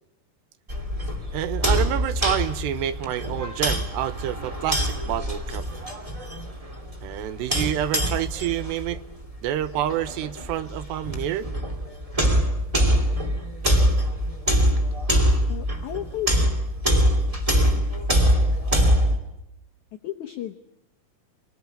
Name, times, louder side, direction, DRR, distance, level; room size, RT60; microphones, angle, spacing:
sound 1, 0.7-19.2, equal, 10° right, 1.9 m, -24 dB
voice 1, 1.3-5.7 7.0-9.0 9.4-11.5 13.6-13.8, right 11 dB, 90° right, 14 dB, 3.3 m, -28 dB
voice 2, 15.5-16.3 18.5-18.7 20.0-20.6, left 13 dB, 65° left, 5 dB, 2.0 m, -33 dB
28.0 x 19.0 x 8.8 m, 0.89 s
omnidirectional pair, 4.8 m